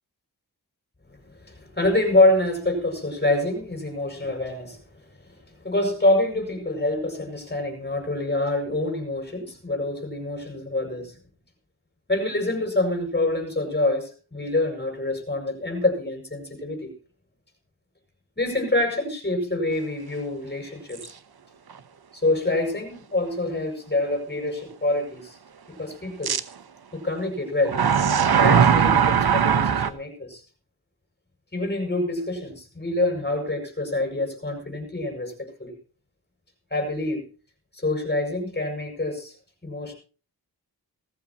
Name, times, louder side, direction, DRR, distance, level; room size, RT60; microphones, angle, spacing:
voice 1, 1.4-4.8 5.6-11.1 12.1-16.9 18.4-21.1 22.1-25.4 25.7-26.3 26.9-27.8 28.4-30.4 31.5-35.7 36.7-37.2 37.7-39.3 39.6-39.9, left 2 dB, 25° left, 2 dB, 6.8 m, -26 dB
sound 1, 21.0-21.1 21.7-21.8 26.2-26.4 27.7-29.9, right 7 dB, 70° right, 0.9 m, -19 dB
19.5 x 15.5 x 3.0 m, 0.37 s
wide cardioid pair, 80°, 39 cm